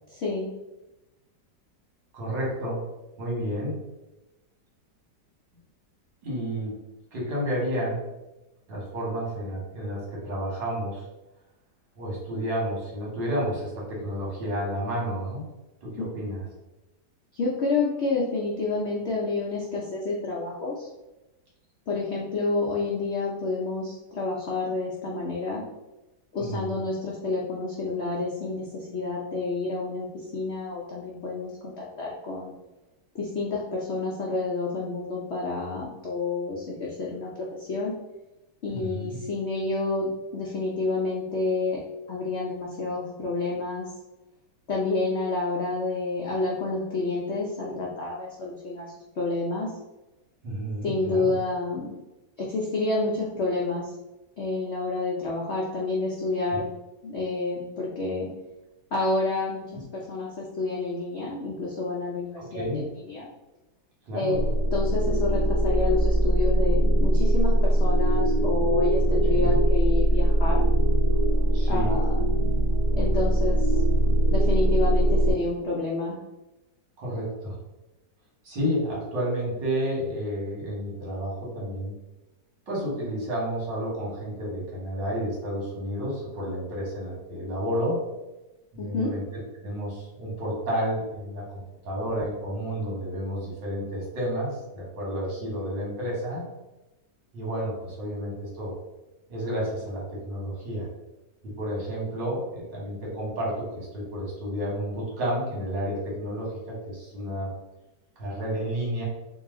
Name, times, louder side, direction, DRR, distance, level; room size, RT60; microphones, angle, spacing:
voice 1, 0.1-0.5 16.0-16.1 17.3-20.9 21.9-25.6 26.3-32.5 33.1-37.3 37.6-37.9 38.6-41.8 42.1-43.9 44.7-49.7 50.8-52.0 52.4-53.9 54.4-56.6 57.0-58.3 58.9-63.3 64.1-64.5 64.7-70.6 71.7-72.0 73.0-73.8 74.3-76.2 88.8-89.1, left 3 dB, 70° left, -4 dB, 0.6 m, -29 dB
voice 2, 2.1-2.8 3.2-3.8 6.2-6.7 7.1-8.0 8.7-11.0 12.0-15.4 15.8-16.4 26.4-26.6 38.7-39.2 50.4-51.3 56.5-56.6 59.7-59.8 62.4-62.8 64.1-64.5 69.3-69.6 71.5-72.0 77.0-77.6 78.4-81.9 82.7-88.0 88.7-96.4 97.3-98.7 99.3-100.9 101.4-107.5 108.2-109.0, equal, 80° right, -5 dB, 2.1 m, -31 dB
sound 1, 64.3-75.3, right 1 dB, 20° left, 0.5 m, -21 dB
3.9 x 2.3 x 3.7 m, 1.0 s
omnidirectional pair, 1.9 m